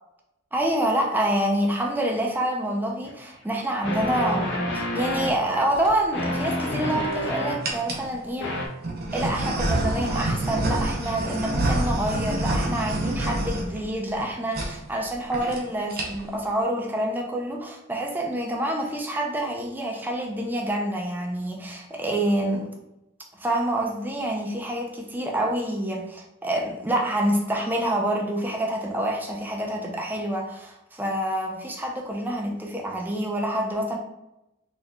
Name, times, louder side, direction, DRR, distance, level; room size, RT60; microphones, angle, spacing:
voice 1, 0.5-8.5 9.1-22.7 23.3-34.0, right 1 dB, 10° right, 0 dB, 0.5 m, -27 dB
sound 1, 3.0-3.1 3.8-5.3 6.1-7.6 8.4-8.7, left 1 dB, 55° left, 0.6 m, -28 dB
sound 2, 5.5-5.9 6.6-7.2 7.6-8.1 8.8-14.2 14.5-14.7 15.0-15.1 15.3-15.6 15.9-16.4, right 1 dB, 50° right, 0.7 m, -27 dB
4.0 x 3.1 x 2.3 m, 0.90 s
head